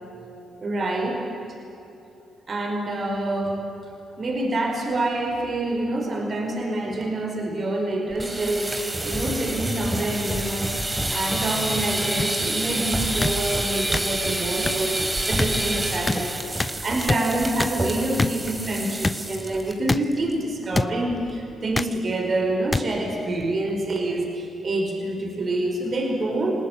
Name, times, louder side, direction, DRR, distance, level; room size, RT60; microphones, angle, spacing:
voice 1, 0.6-1.3 2.5-3.7 4.2-10.8 11.1-26.5, right 2 dB, 50° right, 2 dB, 5.1 m, -27 dB
sound 1, 8.1-19.7 20.0-20.3 20.6-20.7 21.1-21.5, right 1 dB, 20° right, 4.0 m, -28 dB
sound 2, 12.2-12.3 13.2-13.3 13.9-14.0 14.7-14.8 15.4-15.5 16.1-16.2 16.6-16.7 17.1-17.2 17.6-17.7 18.2-18.3 19.0-19.2 19.9-20.0 20.7-20.9 21.7-21.9 22.7-22.8 23.7-23.8, left 3 dB, 25° left, 0.8 m, -24 dB
28.5 x 19.0 x 9.3 m, 2.9 s
hypercardioid pair, 45°, 0 cm